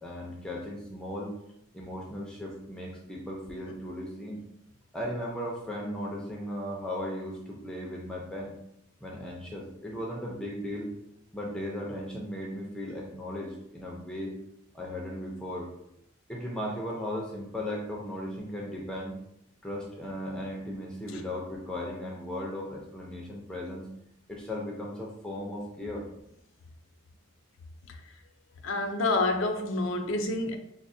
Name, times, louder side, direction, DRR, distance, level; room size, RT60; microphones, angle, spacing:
voice 1, 0.0-1.3 1.7-4.4 4.9-8.5 9.0-10.9 11.3-14.4 14.7-15.7 16.3-19.1 19.6-23.8 24.3-26.1, left 1 dB, 5° left, -3 dB, 0.4 m, -36 dB
voice 2, 28.6-30.6, left 2 dB, 75° left, 5 dB, 0.5 m, -28 dB
5.1 x 2.0 x 2.6 m, 0.78 s
head